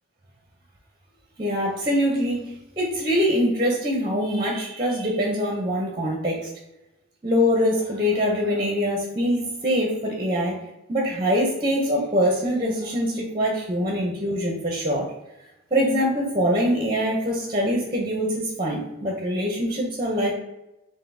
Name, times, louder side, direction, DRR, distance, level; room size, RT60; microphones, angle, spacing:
voice 1, 1.4-6.5 7.2-10.6 10.9-15.1 15.7-20.3, equal, 20° right, 0 dB, 0.6 m, -24 dB
3.8 x 2.7 x 3.3 m, 0.94 s
head